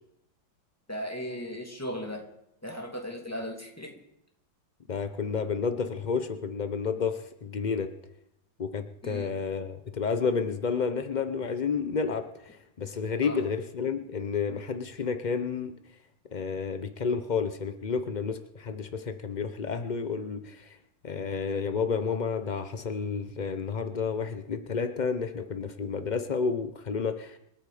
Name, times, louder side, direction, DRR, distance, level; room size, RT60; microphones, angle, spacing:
voice 1, 0.9-2.2 2.6-4.0 9.0-9.3 13.2-13.4, equal, 5° left, 1 dB, 2.6 m, -37 dB
voice 2, 4.9-7.9 8.6-15.7 16.3-20.8 21.0-27.4, left 5 dB, 85° left, 9 dB, 0.4 m, -31 dB
26.5 x 9.2 x 5.0 m, 0.78 s
omnidirectional pair, 2.1 m